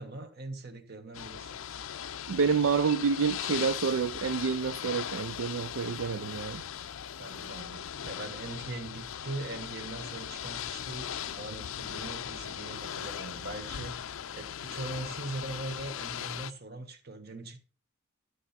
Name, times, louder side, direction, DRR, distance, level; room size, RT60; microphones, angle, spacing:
voice 1, 0.0-1.6 7.2-17.6, right 2 dB, 50° right, 1.3 m, -41 dB
Ocean / Boat Water vehicle, 1.1-16.5, left 9 dB, 70° left, 0.5 m, -39 dB
voice 2, 2.3-6.6, right 5 dB, 70° right, 0.4 m, -28 dB
12.0 x 6.6 x 4.1 m
head